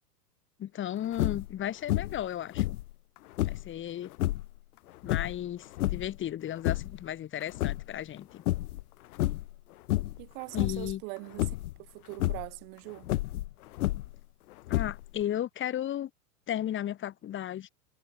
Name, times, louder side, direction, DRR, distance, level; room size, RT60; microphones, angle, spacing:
voice 1, 0.6-2.8 3.4-4.1 5.0-8.4 10.5-11.0 14.7-16.1 16.5-17.7, left 11 dB, 25° left, 2.3 m, -35 dB
sound 1, 1.1-1.5 1.9-2.3 2.5-3.7 4.1-4.5 5.0-6.2 6.5-7.0 7.4-8.2 8.5-8.8 9.1-9.5 9.9-10.2 10.5-10.9 11.4-11.7 12.1-12.5 13.0-14.2 14.7-15.2, left 16 dB, 65° left, 0.9 m, -30 dB
voice 2, 10.2-11.5 11.8-13.1, right 34 dB, 50° right, 3.8 m, -41 dB
hypercardioid pair, 125°, 48 cm